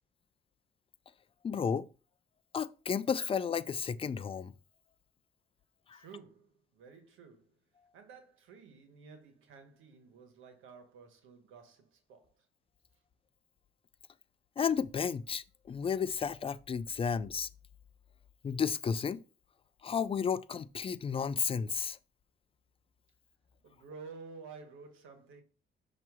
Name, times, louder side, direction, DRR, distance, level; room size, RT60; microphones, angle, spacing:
voice 1, 1.4-1.9 2.5-4.5 5.9-6.0 14.6-17.5 18.4-19.2 19.8-22.0, left 6 dB, 30° left, 0.4 m, -32 dB
voice 2, 5.9-7.6 7.9-12.5 23.6-25.4, right 5 dB, 85° right, 1.3 m, -52 dB
6.0 x 2.9 x 5.5 m
cardioid pair, 90°, 20 cm